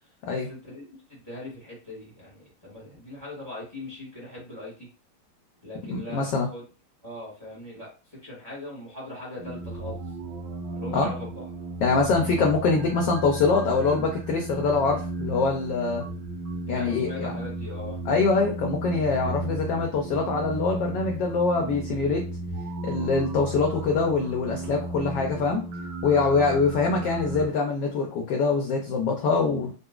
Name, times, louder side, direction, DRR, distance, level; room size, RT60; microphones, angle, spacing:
voice 1, 0.3-4.9 5.6-6.6 7.0-7.9 8.2-10.0 10.7-11.5 16.7-18.0, left 1 dB, 15° right, -6 dB, 1.3 m, -40 dB
voice 2, 5.9-6.5 10.9-11.1 11.8-16.0 16.7-17.3 18.1-22.2 22.8-25.6 26.0-29.7, left 4 dB, 75° left, 1 dB, 1.0 m, -24 dB
sound 1, 9.4-27.5, right 2 dB, 70° right, 1.1 m, -34 dB
3.8 x 2.4 x 2.3 m, 0.35 s
omnidirectional pair, 2.4 m